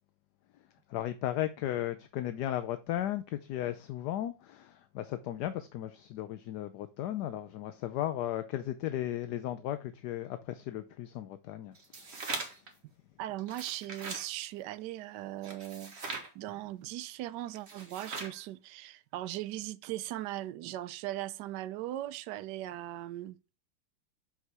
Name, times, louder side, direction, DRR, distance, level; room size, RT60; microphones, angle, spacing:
voice 1, 0.9-11.8, left 12 dB, 70° left, 1.0 m, -35 dB
sound 1, 11.8-12.7 13.4-14.3 15.4-16.3 17.6-18.4, right 3 dB, 35° right, 1.7 m, -40 dB
voice 2, 13.2-15.9 16.3-23.4, right 14 dB, 70° right, 1.1 m, -39 dB
6.5 x 5.3 x 4.8 m
omnidirectional pair, 2.1 m